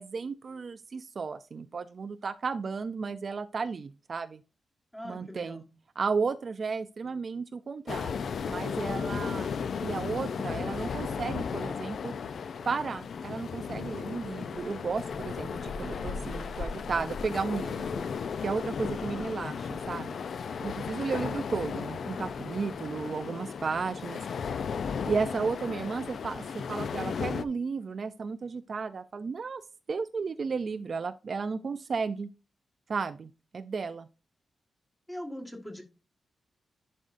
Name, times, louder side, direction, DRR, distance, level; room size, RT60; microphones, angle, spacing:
voice 1, 0.0-4.4 5.0-5.6 6.0-9.5 9.8-12.1 12.6-18.0 18.4-20.2 20.6-24.2 25.1-29.6 29.9-32.3 32.9-34.1, right 5 dB, 40° right, 12 dB, 0.3 m, -34 dB
voice 2, 4.9-5.6 19.0-19.4 35.1-35.8, equal, 10° left, 3 dB, 1.4 m, -41 dB
sound 1, 7.9-27.5, left 6 dB, 60° left, 0.4 m, -35 dB
11.0 x 5.2 x 2.6 m, 0.30 s
wide cardioid pair, 160°, 0 cm